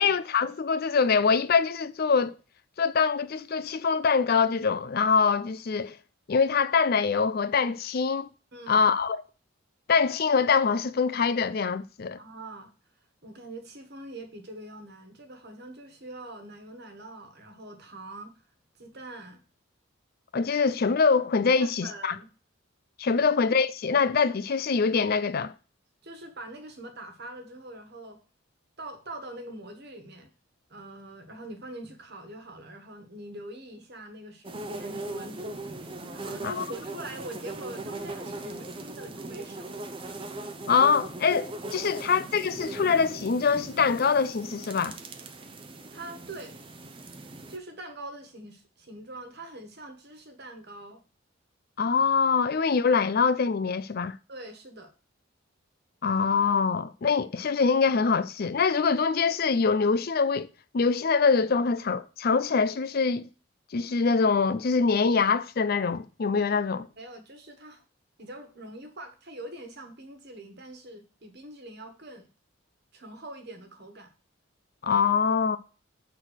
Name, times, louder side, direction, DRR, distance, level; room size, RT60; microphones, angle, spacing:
voice 1, 0.0-2.3 2.8-6.0 6.3-8.3 8.7-9.2 9.9-12.2 20.3-22.1 23.0-25.5 36.4-36.6 40.7-45.0 51.8-54.1 56.0-60.5 60.7-63.3 63.7-66.9 74.8-75.6, left 5 dB, 45° left, 0.4 m, -24 dB
voice 2, 8.5-8.8 12.2-12.7 13.2-18.4 18.8-19.4 21.5-22.3 23.1-23.3 26.0-28.2 28.8-30.3 30.7-35.8 36.1-40.5 42.0-42.1 45.9-46.6 47.5-51.0 54.3-54.9 67.0-67.8 68.2-72.3 72.9-74.1, right 1 dB, 50° right, 1.5 m, -43 dB
sound 1, 34.4-47.6, right 2 dB, 25° right, 0.6 m, -39 dB
6.5 x 4.0 x 6.3 m
head